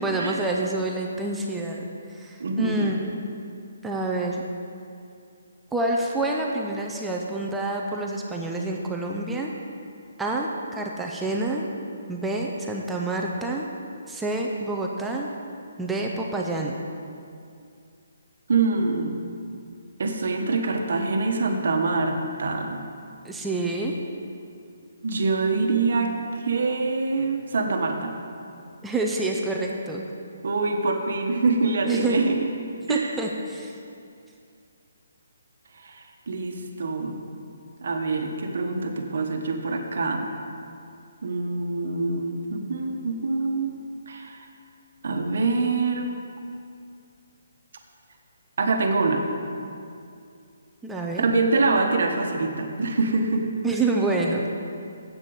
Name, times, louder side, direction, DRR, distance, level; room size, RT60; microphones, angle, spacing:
voice 1, 0.0-3.2 3.8-4.4 5.7-9.5 10.2-11.6 12.1-13.7 14.1-15.3 15.8-16.7 23.2-23.9 28.8-30.0 31.9-32.2 32.9-33.7 50.8-51.3 53.6-54.4, right 2 dB, 5° right, -1 dB, 0.5 m, -27 dB
voice 2, 2.4-2.9 18.5-19.2 20.0-22.8 25.0-28.1 30.4-32.4 32.9-33.2 35.7-37.2 37.8-40.3 41.2-43.7 44.1-44.5 45.0-46.2 48.6-49.2 51.2-53.4, right 3 dB, 55° right, 3 dB, 1.2 m, -25 dB
8.2 x 7.3 x 7.9 m, 2.4 s
hypercardioid pair, 175°, 0 cm